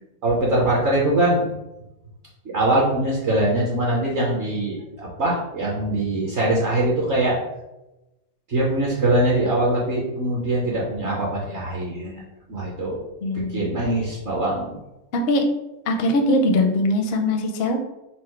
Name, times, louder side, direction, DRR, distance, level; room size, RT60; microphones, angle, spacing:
voice 1, 0.2-1.5 2.5-7.4 8.5-12.2 12.5-13.0 13.3-14.8, right 1 dB, 55° right, -4 dB, 1.0 m, -22 dB
voice 2, 13.2-13.7 15.1-15.5 15.9-17.8, left 1 dB, 65° left, 4 dB, 0.6 m, -21 dB
4.4 x 2.0 x 4.4 m, 0.98 s
omnidirectional pair, 1.6 m